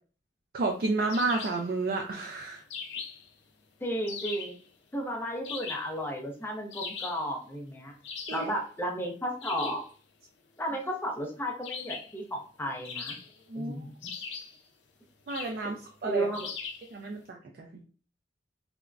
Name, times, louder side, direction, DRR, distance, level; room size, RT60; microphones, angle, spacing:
voice 1, 0.5-2.6 8.3-8.4 13.5-13.8 15.3-16.3 16.9-17.7, right 3 dB, 55° right, 1 dB, 0.4 m, -31 dB
sound 1, 1.1-1.7 2.7-3.3 4.1-4.6 5.4-6.0 6.7-7.3 8.0-8.6 9.4-9.9 11.6-12.2 12.8-13.5 14.0-14.6 15.3-15.6 16.3-16.9, left 5 dB, 80° left, 0.5 m, -39 dB
voice 2, 3.8-4.6 4.9-7.9 8.3-9.8 10.6-13.2 13.5-14.1 15.6-15.8 16.0-16.5, equal, 15° left, 1 dB, 0.5 m, -33 dB
3.3 x 2.1 x 2.4 m, 0.41 s
head